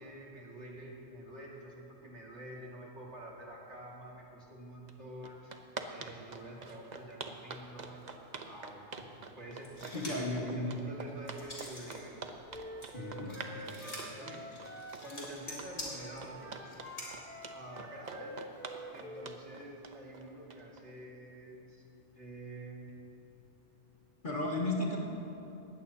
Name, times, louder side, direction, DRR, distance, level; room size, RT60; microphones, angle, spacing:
voice 1, 0.0-5.6 5.9-8.9 9.4-12.1 12.9-14.5 15.0-16.5 17.5-18.4 18.9-21.9 22.1-23.1, right 1 dB, 70° right, -3 dB, 2.4 m, -48 dB
sound 1, 4.9-5.0 5.2-20.8, right 4 dB, 40° right, 0.8 m, -45 dB
sound 2, 9.6-10.3 10.8-12.0 12.4-17.1, left 1 dB, 65° left, 3.4 m, -46 dB
voice 2, 9.9-10.7 12.9-13.3 24.2-25.0, left 2 dB, 45° left, -3 dB, 1.9 m, -34 dB
Wind instrument woodwind instrument, 12.5-15.7 16.0-19.4, right 1 dB, 10° left, 1.0 m, -48 dB
19.5 x 15.5 x 2.8 m, 3.0 s
omnidirectional pair, 1.2 m